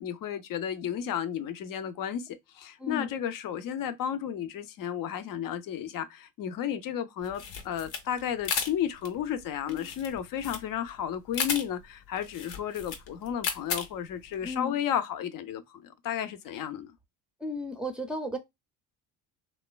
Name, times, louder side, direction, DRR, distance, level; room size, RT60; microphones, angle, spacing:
voice 1, 0.0-2.3 2.5-16.9, left 9 dB, 50° left, 0.6 m, -33 dB
sound 1, 7.2-14.6, left 6 dB, 80° left, 0.8 m, -35 dB
voice 2, 14.4-14.8 17.4-18.4, left 1 dB, ahead, 0.6 m, -34 dB
3.0 x 2.2 x 2.2 m
hypercardioid pair, 60°, 45 cm